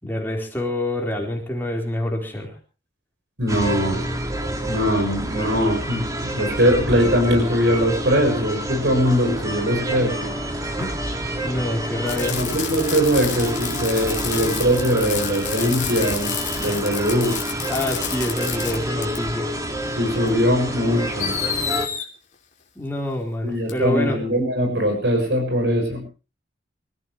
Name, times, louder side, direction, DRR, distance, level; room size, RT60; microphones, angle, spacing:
voice 1, 0.0-2.5 10.8-11.0 11.4-12.4 17.7-19.5 22.8-24.2, left 1 dB, 10° left, 0 dB, 4.2 m, -26 dB
voice 2, 3.4-4.1 4.7-10.3 12.3-17.4 19.9-21.4 23.4-26.0, equal, 70° right, 5 dB, 6.7 m, -21 dB
sound 1, 3.5-21.9, right 1 dB, 20° right, 2.0 m, -28 dB
Fireworks, 12.1-18.8 19.0-19.2 20.3-20.4 21.2-22.0 23.7-23.8, left 9 dB, 45° left, 2.8 m, -30 dB
25.5 x 15.0 x 3.1 m, 0.31 s
head